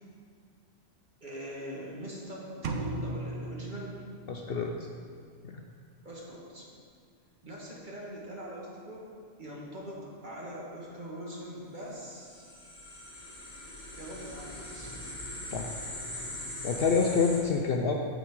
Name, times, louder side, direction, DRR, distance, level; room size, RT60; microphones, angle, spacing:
voice 1, 1.2-4.0 6.0-6.7 7.4-9.1 9.4-12.4 13.9-14.9, equal, 40° right, -4 dB, 1.8 m, -42 dB
sound 1, 2.6-4.6, right 2 dB, 75° right, 1.0 m, -37 dB
voice 2, 4.3-4.7 5.4-5.6 15.5-15.7 16.6-17.9, left 5 dB, 60° left, 2 dB, 0.7 m, -27 dB
sound 2, 12.0-17.4, left 1 dB, 35° left, 2.2 m, -41 dB
9.0 x 7.2 x 4.7 m, 2.2 s
omnidirectional pair, 1.3 m